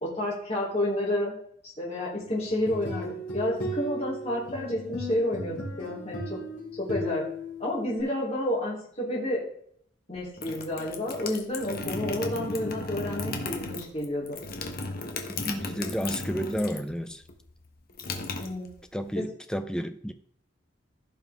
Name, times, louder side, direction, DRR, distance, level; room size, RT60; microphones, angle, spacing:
voice 1, 0.0-1.3 1.8-6.4 6.7-7.2 7.6-9.4 10.1-14.4 18.4-18.7 19.1-19.2, left 1 dB, 30° left, 3.2 m, -30 dB
sound 1, 2.4-8.0, equal, 70° left, 4.0 m, -36 dB
sound 2, 10.1-16.9 17.2-19.1, left 3 dB, 45° left, 1.2 m, -35 dB
voice 2, 15.4-17.2 18.9-20.1, equal, 5° left, 0.6 m, -31 dB
15.5 x 5.6 x 3.5 m
head